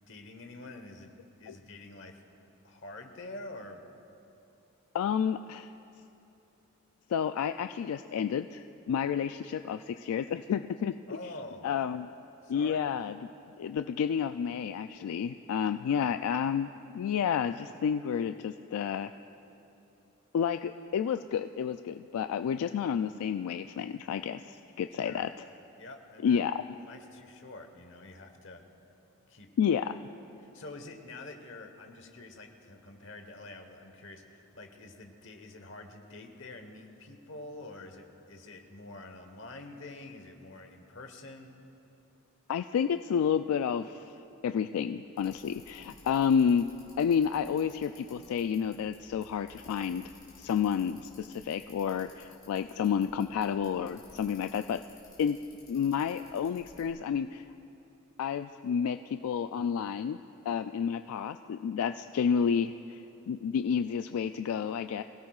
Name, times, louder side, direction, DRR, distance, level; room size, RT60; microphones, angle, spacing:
voice 1, 0.1-1.1 1.4-2.2 2.6-3.9 11.1-11.7 12.4-12.9 15.9-16.1 25.0-25.3 25.8-26.4 26.7-28.6 29.3-29.5 30.4-41.6, left 2 dB, 55° left, 5 dB, 1.1 m, -47 dB
voice 2, 4.9-5.7 7.1-10.9 11.6-12.1 12.5-13.2 13.6-19.1 20.3-25.3 26.2-26.6 29.6-29.9 42.5-44.2 44.4-46.7 47.0-50.1 50.4-54.8 55.2-55.4 55.7-57.4 58.2-60.2 60.5-65.0, left 7 dB, 85° left, 9 dB, 0.3 m, -30 dB
Bicycle, 45.2-56.9, left 2 dB, 20° left, 3.7 m, -57 dB
23.5 x 16.5 x 2.4 m, 2.9 s
head